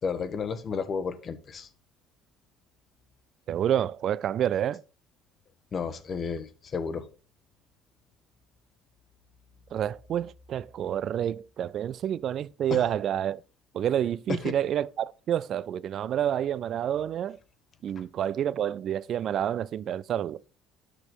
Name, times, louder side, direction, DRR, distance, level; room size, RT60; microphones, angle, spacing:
voice 1, 0.0-1.7 5.7-7.1 12.7-12.8 14.3-14.6, left 5 dB, 40° left, 1.1 m, -32 dB
voice 2, 3.5-4.8 9.7-13.4 13.7-17.4 17.8-20.4, right 10 dB, 55° right, 0.3 m, -28 dB
8.1 x 6.1 x 4.4 m
hypercardioid pair, 70°, 0 cm